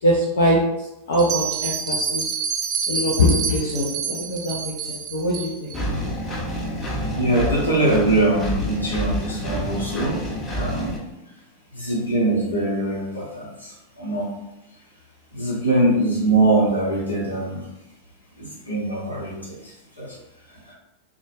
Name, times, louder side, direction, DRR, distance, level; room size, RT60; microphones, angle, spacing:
voice 1, 0.0-2.2 2.9-5.8, equal, 60° left, -3 dB, 0.5 m, -22 dB
Bell, 1.1-5.8, right 6 dB, 35° right, 0.4 m, -27 dB
Engine, 5.7-11.0, equal, 15° left, 0.6 m, -28 dB
voice 2, 6.5-10.2 10.5-11.0 11.7-14.3 15.3-17.7 18.4-20.2 20.5-20.7, right 2 dB, 85° left, -6 dB, 0.9 m, -23 dB
2.2 x 2.0 x 3.1 m, 0.91 s
figure-of-eight pair, 90°, 0 cm